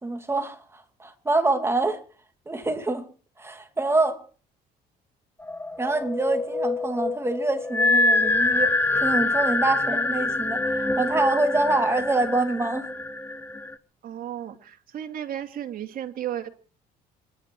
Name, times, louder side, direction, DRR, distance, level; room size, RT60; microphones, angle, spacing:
voice 1, 0.0-2.0 2.5-3.0 3.4-4.2 5.8-12.9, right 2 dB, 15° right, 2.6 m, -26 dB
sound 1, 5.4-13.7, left 2 dB, 10° left, 1.0 m, -25 dB
voice 2, 14.0-16.5, right 10 dB, 55° right, 2.7 m, -34 dB
26.5 x 11.0 x 4.8 m
cardioid pair, 110°, 17 cm